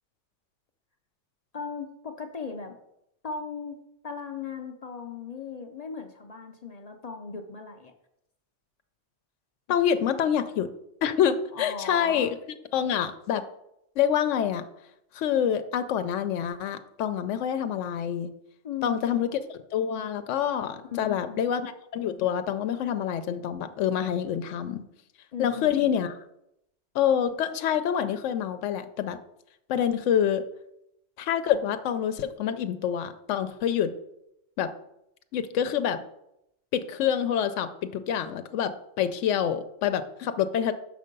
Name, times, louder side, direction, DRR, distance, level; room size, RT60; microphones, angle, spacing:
voice 1, 1.5-2.8 3.2-7.9 9.7-9.8 11.5-12.3 18.6-19.4 20.8-21.5 25.3-25.9, left 5 dB, 45° left, 5 dB, 0.5 m, -37 dB
voice 2, 9.7-10.7 11.0-12.4 12.7-13.4 14.0-14.6 15.1-18.3 18.8-19.4 19.7-24.8 25.4-26.1 26.9-29.2 29.7-30.4 31.2-33.9 34.6-34.7 35.3-36.0 36.7-40.7, left 9 dB, 85° left, 10 dB, 0.9 m, -26 dB
6.7 x 5.4 x 5.2 m, 0.81 s
omnidirectional pair, 1.2 m